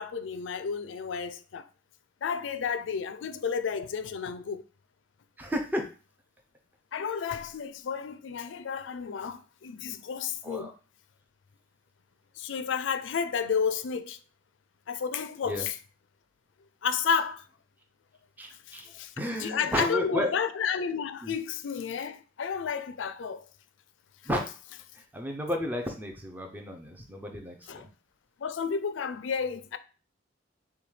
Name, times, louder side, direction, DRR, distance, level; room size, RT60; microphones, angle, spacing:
voice 1, 0.0-1.7 2.2-4.6 6.9-10.7 12.4-14.2 14.9-15.8 16.8-17.4 18.7-19.1 19.4-23.4 27.7-27.9 28.4-29.8, left 6 dB, 90° left, 0.4 m, -31 dB
voice 2, 5.4-5.9 10.4-10.7 15.4-15.7 18.4-18.9 19.2-20.3 21.2-21.3 24.2-24.5 24.9-27.9, equal, 10° right, 0.5 m, -32 dB
6.7 x 2.2 x 3.2 m
head